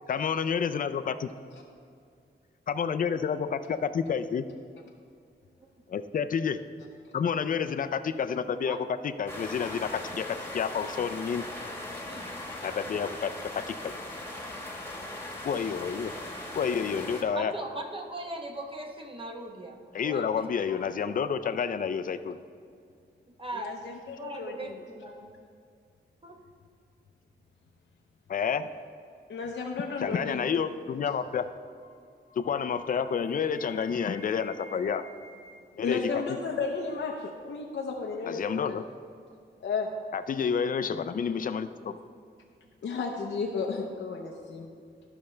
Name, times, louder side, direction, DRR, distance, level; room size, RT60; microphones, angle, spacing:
voice 1, 0.1-1.3 2.7-4.5 5.9-6.6 7.1-11.4 12.6-14.0 15.4-16.1 16.5-17.5 19.9-22.4 28.3-28.7 30.0-31.5 32.4-35.1 35.8-36.1 38.3-38.9 40.1-42.0, left 6 dB, 45° left, 11 dB, 0.4 m, -29 dB
sound 1, 9.3-17.2, left 1 dB, 10° left, 1.3 m, -39 dB
voice 2, 17.3-20.8 23.4-23.8 24.1-25.3 26.2-26.4, right 1 dB, 30° right, 2 dB, 0.9 m, -39 dB
voice 3, 23.5-24.6 29.3-30.5 35.8-38.4 38.7-38.8 39.6-39.9 42.8-44.7, left 4 dB, 85° left, 0 dB, 0.6 m, -33 dB
sound 2, 31.2-31.5 31.8-32.0 32.3-35.7, left 1 dB, 65° right, 2.2 m, -49 dB
12.5 x 5.7 x 3.2 m, 2.3 s
wide cardioid pair, 95°, 19 cm